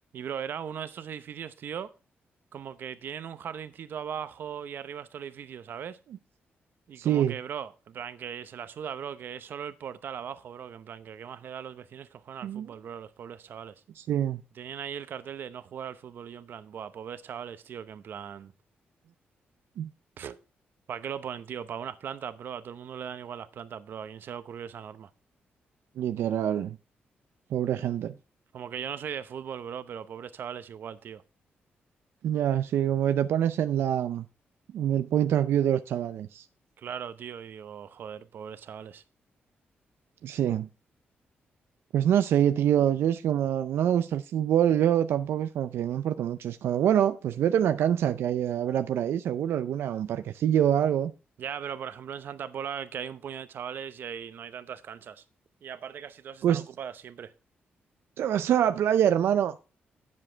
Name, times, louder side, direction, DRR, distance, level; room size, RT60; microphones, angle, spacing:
voice 1, 0.1-1.9 2.5-6.0 6.9-13.7 14.5-18.5 20.2-20.4 20.9-25.1 28.5-31.2 36.8-39.0 51.4-55.2 55.6-57.3, right 8 dB, 60° right, 0.8 m, -39 dB
voice 2, 7.0-7.4 12.4-12.7 14.0-14.4 19.8-19.9 26.0-26.8 27.5-28.1 32.2-34.3 34.7-36.4 40.2-40.7 41.9-51.1 56.4-56.7 58.2-59.6, right 10 dB, 85° right, 0.5 m, -25 dB
9.8 x 7.5 x 4.4 m
wide cardioid pair, 155°, 4 cm